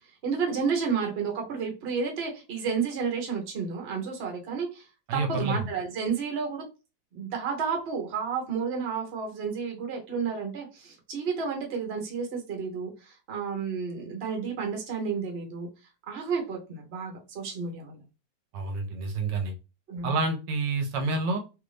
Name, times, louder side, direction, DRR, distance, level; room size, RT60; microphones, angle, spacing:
voice 1, 0.2-4.9 5.1-6.6 7.1-15.7 16.1-18.0 19.9-20.2, right 5 dB, 45° right, 1 dB, 0.9 m, -31 dB
voice 2, 5.1-5.6 18.5-19.5 20.0-21.4, right 3 dB, 75° right, 4 dB, 1.2 m, -28 dB
3.1 x 2.5 x 3.2 m, 0.30 s
omnidirectional pair, 1.9 m